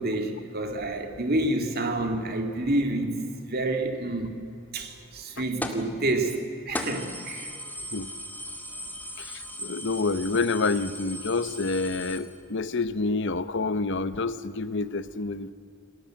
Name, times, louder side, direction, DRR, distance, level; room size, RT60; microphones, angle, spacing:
voice 1, 0.0-4.4 4.7-7.5, right 1 dB, 50° right, 5 dB, 2.8 m, -28 dB
sound 1, 5.6-5.9 6.3-6.4 6.7-12.2, left 1 dB, 10° left, 2.1 m, -37 dB
voice 2, 9.2-15.5, left 3 dB, 60° left, 13 dB, 0.9 m, -28 dB
29.5 x 20.0 x 7.8 m, 2.5 s
head